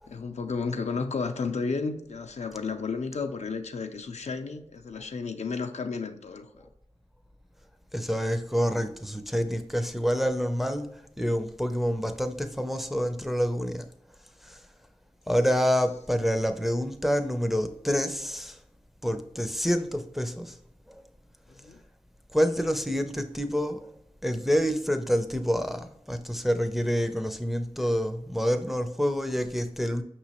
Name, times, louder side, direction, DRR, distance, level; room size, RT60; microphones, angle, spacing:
voice 1, 0.1-6.7 21.6-21.8, left 4 dB, 80° left, 0.4 m, -32 dB
voice 2, 7.9-13.9 14.4-14.6 15.3-18.6 19.0-20.6 20.9-21.0 22.3-23.9 24.2-30.0, equal, ahead, 0.4 m, -27 dB
5.6 x 3.0 x 2.9 m
wide cardioid pair, 65°, 11 cm